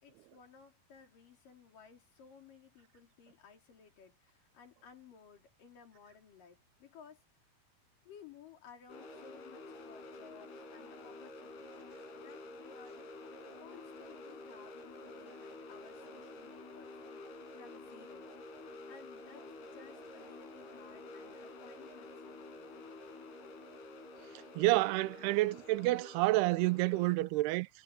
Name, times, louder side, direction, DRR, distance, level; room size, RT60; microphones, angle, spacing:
voice 1, 0.0-7.2 8.0-13.0 13.6-18.3 18.9-22.9, left 6 dB, 60° left, 4.9 m, -58 dB
sound 1, 8.9-27.2, left 2 dB, 85° left, 6.0 m, -50 dB
voice 2, 24.6-27.7, right 19 dB, 90° right, 2.6 m, -29 dB
omnidirectional pair, 4.5 m